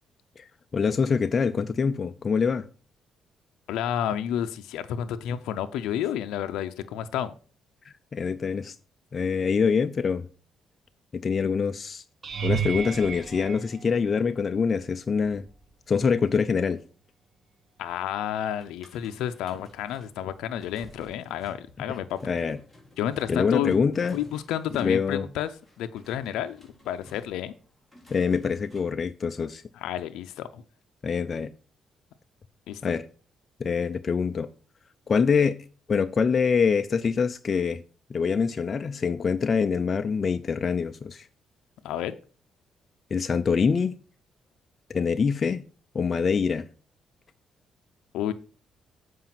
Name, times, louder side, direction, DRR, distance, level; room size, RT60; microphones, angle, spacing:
voice 1, 0.7-2.6 8.1-8.8 9.1-10.3 11.2-12.0 12.4-15.4 15.9-16.8 22.2-22.6 23.3-24.2 24.8-25.3 28.1-29.6 31.0-31.5 32.8-33.1 33.6-34.5 35.1-35.6 35.9-37.8 38.1-41.3 43.1-43.9 44.9-45.6 45.9-46.7, left 5 dB, 40° left, 0.5 m, -25 dB
voice 2, 3.7-7.3 17.8-22.2 23.0-23.8 24.1-25.5 25.8-27.5 29.7-30.6 32.7-32.8 41.8-42.1 48.1-48.3, left 10 dB, 90° left, 0.5 m, -30 dB
sound 1, 12.2-14.5 15.2-15.7 16.0-16.2 20.5-20.6, right 8 dB, 45° right, 1.4 m, -33 dB
sound 2, 18.6-29.0, left 1 dB, ahead, 3.8 m, -52 dB
7.5 x 4.9 x 5.8 m
cardioid pair, 90°, 0 cm